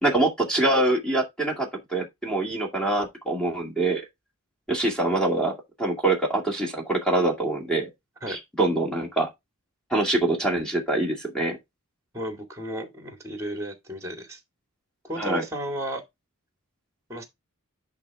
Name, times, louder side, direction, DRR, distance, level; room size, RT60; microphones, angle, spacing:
voice 1, 0.0-4.0 4.7-7.9 8.3-9.3 9.9-11.6 15.2-15.4, right 2 dB, 5° left, 2.1 m, -24 dB
voice 2, 12.1-14.4 15.0-16.0 17.1-17.2, right 1 dB, 15° right, 2.3 m, -33 dB
10.5 x 3.9 x 3.5 m
head